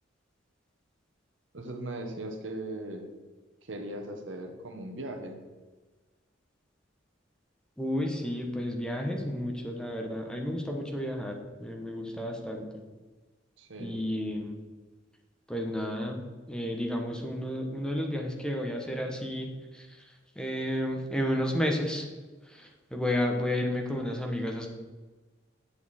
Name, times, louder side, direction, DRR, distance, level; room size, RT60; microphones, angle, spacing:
voice 1, 1.5-3.0 3.7-5.4 13.6-14.0, right 1 dB, 75° right, 4 dB, 1.2 m, -38 dB
voice 2, 7.8-12.7 13.8-14.6 15.5-16.2 16.5-22.1 22.4-24.7, left 1 dB, 5° left, 1 dB, 1.0 m, -32 dB
8.5 x 7.0 x 4.3 m, 1.3 s
head